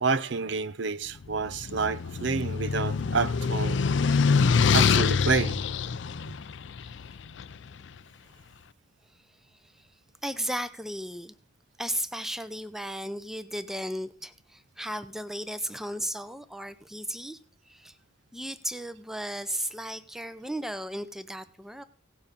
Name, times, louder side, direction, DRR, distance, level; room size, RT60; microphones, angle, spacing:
voice 1, 0.0-3.8 4.7-5.6, right 4 dB, 60° right, 0.7 m, -28 dB
sound 1, 1.3-7.6, left 5 dB, 65° left, 0.5 m, -25 dB
voice 2, 10.2-11.3 11.8-17.4 17.7-18.0 18.3-21.8, equal, ahead, 0.7 m, -35 dB
17.0 x 7.0 x 5.3 m
head